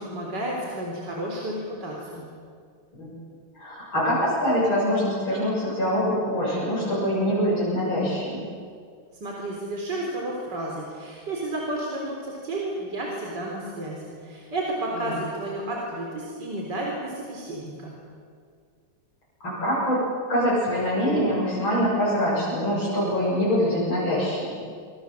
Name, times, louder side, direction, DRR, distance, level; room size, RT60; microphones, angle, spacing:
voice 1, 0.0-2.2 9.2-17.9, right 1 dB, 55° right, -2 dB, 4.5 m, -32 dB
voice 2, 3.5-8.5 14.9-15.2 19.4-20.0 20.3-24.6, equal, 80° left, -8 dB, 8.1 m, -24 dB
26.0 x 26.0 x 7.5 m, 2.2 s
omnidirectional pair, 2.2 m